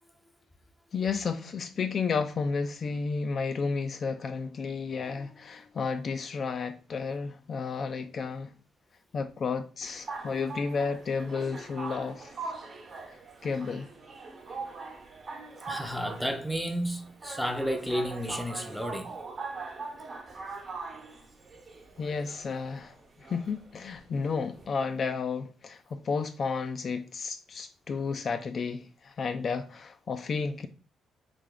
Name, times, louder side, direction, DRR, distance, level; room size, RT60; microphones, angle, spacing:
voice 1, 0.9-8.5 9.1-12.6 13.1-13.9 22.0-30.7, left 5 dB, 50° left, 0.4 m, -32 dB
sound 1, 9.8-24.7, right 4 dB, 40° right, 1.0 m, -42 dB
voice 2, 15.7-19.2, equal, ahead, 0.6 m, -32 dB
3.3 x 2.9 x 3.7 m
cardioid pair, 90°, 0 cm